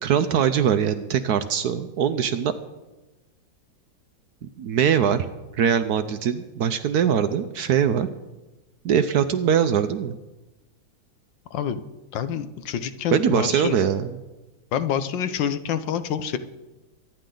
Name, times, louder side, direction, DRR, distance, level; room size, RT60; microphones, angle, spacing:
voice 1, 0.0-2.5 4.4-5.3 5.6-8.1 8.8-10.2 13.1-14.0, right 8 dB, 70° right, 11 dB, 1.0 m, -22 dB
voice 2, 11.5-11.8 12.1-13.8 14.7-16.4, left 8 dB, 75° left, 11 dB, 1.5 m, -27 dB
24.0 x 10.0 x 3.9 m, 1.1 s
omnidirectional pair, 2.1 m